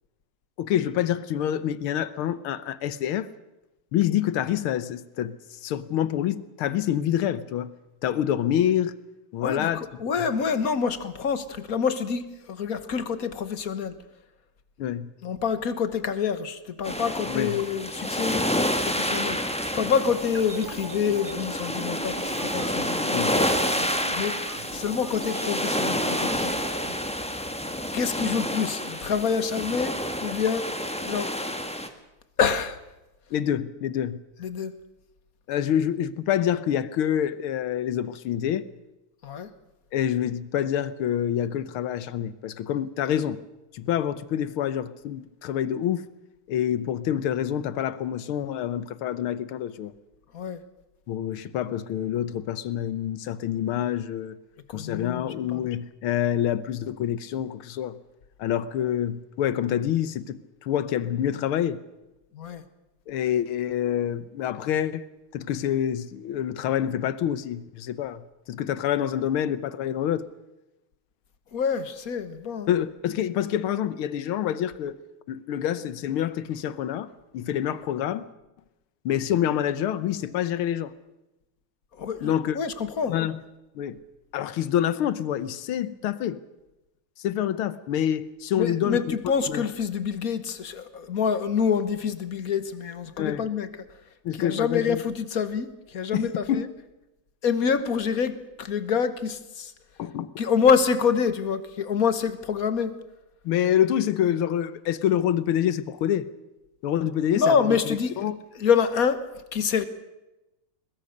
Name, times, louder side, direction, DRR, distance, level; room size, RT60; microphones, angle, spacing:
voice 1, 0.6-3.3 3.9-7.7 8.0-9.0 9.3-9.8 10.1-10.2 14.8-15.1 17.3-17.6 23.1-23.4 33.3-34.2 35.5-38.7 39.9-43.4 43.7-46.0 46.5-49.9 51.1-54.4 54.7-58.0 58.4-61.8 63.1-65.1 65.3-70.3 72.7-75.0 75.3-78.2 79.0-80.9 82.2-82.6 83.0-83.4 83.7-84.0 84.3-86.4 87.2-89.2 89.5-89.6 93.2-93.5 94.2-95.0 96.1-96.7 100.0-100.3 103.4-106.3 106.8-108.4, left 10 dB, 85° left, 1.8 m, -27 dB
voice 2, 9.4-13.9 15.2-18.5 18.9-19.4 19.7-23.4 24.2-24.4 24.7-26.5 27.9-29.9 30.2-30.7 31.0-31.3 32.4-32.8 34.4-34.7 39.2-39.5 50.3-50.6 54.7-55.6 62.3-62.6 71.5-72.7 82.0-83.1 88.6-93.7 94.3-96.7 97.4-99.7 100.4-102.9 107.3-109.2 109.5-109.8, left 6 dB, 45° left, 1.5 m, -26 dB
sound 1, 16.8-31.9, equal, 5° left, 1.2 m, -29 dB
sound 2, 20.2-27.0, right 5 dB, 40° right, 0.9 m, -41 dB
21.5 x 21.0 x 6.6 m
omnidirectional pair, 2.3 m